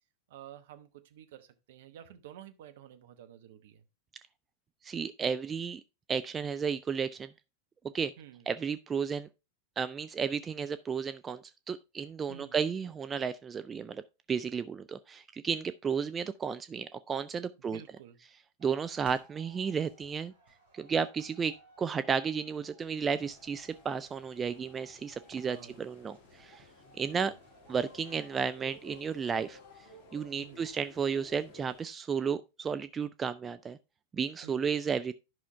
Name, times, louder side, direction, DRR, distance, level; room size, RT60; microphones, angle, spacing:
voice 1, 0.3-3.8 8.2-8.5 12.3-12.6 17.6-18.2 25.4-25.8 27.0-27.4 30.4-30.7 34.4-34.7, right 10 dB, 55° right, 1.0 m, -51 dB
voice 2, 4.8-5.8 6.1-7.3 7.9-8.1 8.5-9.3 9.8-11.4 11.7-14.0 14.3-17.8 18.6-20.3 20.7-26.6 26.9-27.3 27.7-29.6 30.1-33.8 34.1-35.1, right 6 dB, 20° right, 0.4 m, -33 dB
sound 1, 18.6-28.6, right 2 dB, 75° right, 4.4 m, -60 dB
sound 2, 23.0-31.9, left 3 dB, 40° left, 1.7 m, -56 dB
11.0 x 5.7 x 3.4 m
figure-of-eight pair, 90°, 0 cm